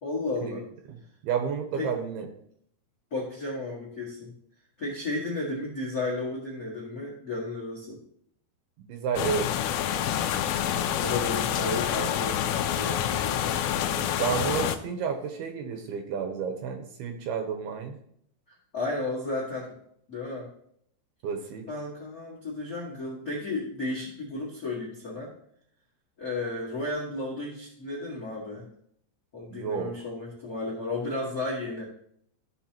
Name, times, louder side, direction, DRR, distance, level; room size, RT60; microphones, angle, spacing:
voice 1, 0.0-0.6 1.8-1.9 3.1-4.3 4.8-8.0 10.4-13.6 18.7-19.8 20.1-20.5 21.7-25.3 26.2-28.6 29.3-31.8, left 2 dB, 70° left, -5 dB, 0.8 m, -33 dB
voice 2, 1.2-2.3 8.9-9.7 9.9-10.1 10.7-11.0 13.9-18.0 21.2-21.7 29.5-29.9, right 7 dB, 75° right, 5 dB, 2.5 m, -31 dB
sound 1, 9.2-14.8, left 10 dB, 85° left, 2.2 m, -27 dB
14.5 x 5.5 x 2.9 m, 0.69 s
omnidirectional pair, 5.0 m